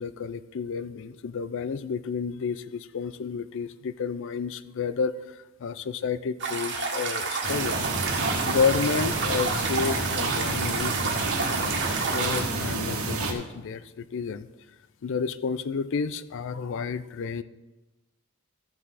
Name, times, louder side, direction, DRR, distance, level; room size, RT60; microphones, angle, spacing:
voice 1, 0.0-7.9 8.5-11.8 12.1-14.5 15.0-17.4, left 5 dB, 60° left, 15 dB, 0.4 m, -31 dB
sound 1, 6.4-12.4, right 4 dB, 55° right, 1.6 m, -30 dB
sound 2, 7.4-13.3, right 3 dB, 75° right, 1.5 m, -29 dB
14.5 x 6.0 x 4.1 m, 1.1 s
head